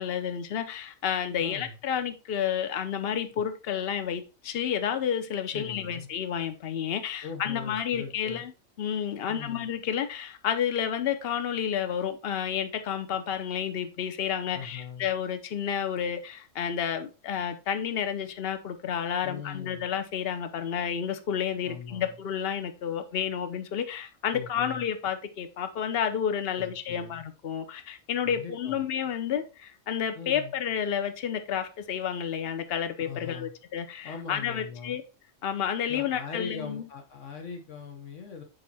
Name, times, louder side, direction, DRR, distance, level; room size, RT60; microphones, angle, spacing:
voice 1, 0.0-8.5 8.8-35.0 35.4-36.9, left 8 dB, 55° left, 1.0 m, -30 dB
voice 2, 1.4-1.8 5.5-6.1 7.2-8.4 9.3-9.7 14.5-15.1 19.2-19.8 21.6-22.2 24.3-24.8 26.6-27.2 28.2-28.8 30.1-30.5 33.0-33.5 34.0-35.0 35.9-38.4, left 6 dB, 85° left, 1.6 m, -40 dB
7.0 x 4.9 x 4.1 m
omnidirectional pair, 1.2 m